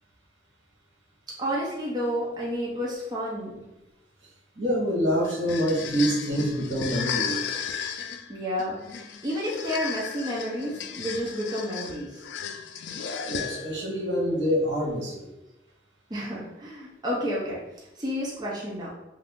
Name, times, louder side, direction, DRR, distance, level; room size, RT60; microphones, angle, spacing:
voice 1, 1.4-3.6 8.3-8.7 9.2-12.2 16.1-17.6 18.0-18.9, equal, 25° right, -5 dB, 0.7 m, -30 dB
voice 2, 4.6-7.5 13.3-15.3, equal, 75° right, -3 dB, 1.1 m, -26 dB
sound 1, 5.2-13.9, left 7 dB, 75° left, 0.3 m, -34 dB
2.7 x 2.4 x 3.6 m, 0.96 s
head